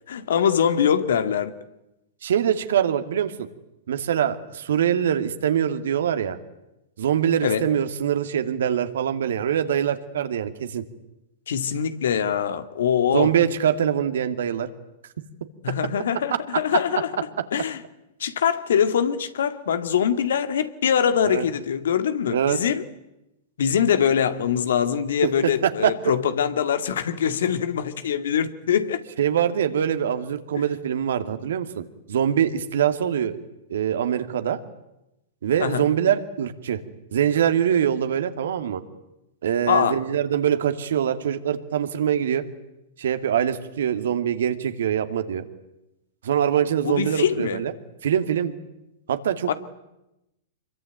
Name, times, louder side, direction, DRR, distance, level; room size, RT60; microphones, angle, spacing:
voice 1, 0.1-1.5 7.4-7.7 11.5-13.3 15.6-17.1 17.5-17.8 18.2-22.8 23.6-29.0 35.6-35.9 39.7-40.0 46.8-47.6 49.5-49.6, left 8 dB, 75° left, 2.0 m, -23 dB
voice 2, 2.2-3.5 3.9-6.4 7.0-10.8 13.1-14.7 21.3-21.4 22.3-22.6 25.2-25.9 29.2-31.8 32.1-33.4 33.7-34.6 35.4-36.8 37.1-38.8 39.4-42.4 43.0-45.4 46.2-47.7 48.0-48.5 49.1-49.5, right 9 dB, 70° right, 2.4 m, -23 dB
26.0 x 23.0 x 9.3 m
hypercardioid pair, 115°, 0 cm